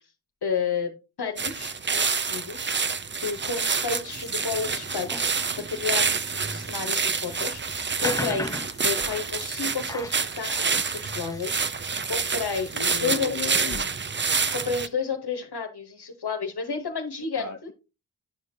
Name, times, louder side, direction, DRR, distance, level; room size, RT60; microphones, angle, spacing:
voice 1, 0.4-0.9 1.2-2.8 3.2-5.3 5.6-8.5 8.8-11.6 12.1-13.3 14.5-17.7, left 5 dB, 75° left, 4 dB, 1.0 m, -31 dB
sound 1, 1.4-14.9, right 5 dB, 30° right, 0.4 m, -28 dB
sound 2, 4.2-12.9, left 1 dB, 10° left, 0.7 m, -40 dB
sound 3, 5.6-7.0 8.4-9.1 10.5-10.6 10.9-11.8 12.2-12.3 12.6-13.8 14.1-14.6, right 1 dB, 45° right, 2.2 m, -43 dB
voice 2, 12.7-13.9 17.4-17.7, left 6 dB, 50° left, 4 dB, 0.6 m, -35 dB
10.0 x 5.1 x 2.6 m, 0.29 s
wide cardioid pair, 50°, 40 cm